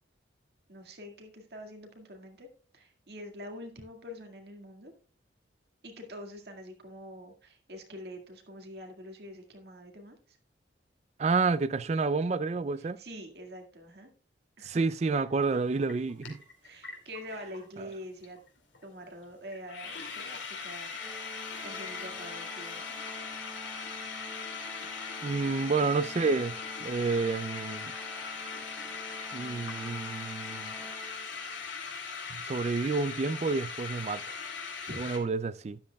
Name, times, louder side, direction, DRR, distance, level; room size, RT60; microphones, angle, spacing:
voice 1, 0.7-2.5 2.7-4.9 5.8-10.4 12.8-14.1 14.6-14.9 16.6-18.4 18.8-21.0 21.6-23.4 34.9-35.0, equal, 60° right, 1.9 m, -45 dB
voice 2, 11.2-13.0 14.6-16.4 25.2-26.6 26.8-27.9 29.3-30.7 32.3-34.4 35.0-35.8, right 4 dB, 35° right, 0.4 m, -29 dB
sound 1, 15.5-15.6 15.9-17.6 17.9-18.0 18.2-18.5 18.7-18.8 19.2-19.3 19.5-35.2, left 5 dB, 80° left, 2.5 m, -40 dB
Organ, 21.0-31.7, right 1 dB, 5° right, 0.9 m, -48 dB
12.5 x 10.5 x 2.3 m
head